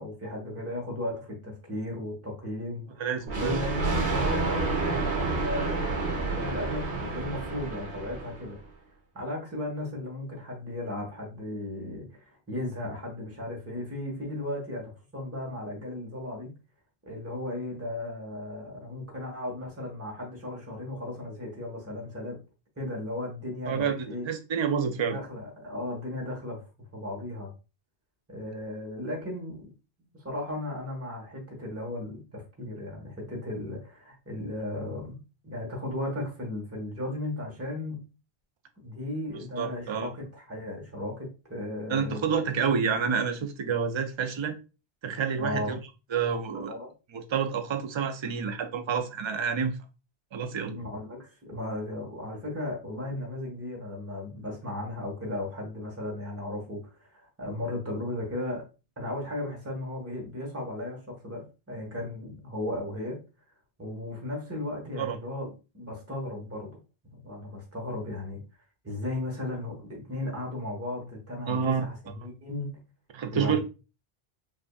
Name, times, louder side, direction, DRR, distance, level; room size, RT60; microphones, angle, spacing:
voice 1, 0.0-3.1 3.3-8.6 9.1-16.5 17.1-22.4 22.8-24.3 24.9-26.6 26.9-27.5 28.3-29.7 30.1-35.2 35.4-38.0 38.8-42.4 45.3-45.8 46.5-46.9 50.7-58.6 59.0-63.2 63.8-65.5 65.7-68.4 68.8-72.8 73.3-73.6, left 1 dB, 15° right, 1.1 m, -35 dB
voice 2, 3.0-3.6 23.7-25.2 39.6-40.1 41.9-44.6 45.0-45.8 46.1-46.7 47.1-49.8 50.3-50.8 65.0-65.2 71.5-71.9 73.1-73.6, right 6 dB, 50° right, 0.3 m, -28 dB
Thunder, 3.3-8.6, right 3 dB, 90° right, 1.3 m, -29 dB
5.5 x 2.6 x 2.3 m
omnidirectional pair, 1.1 m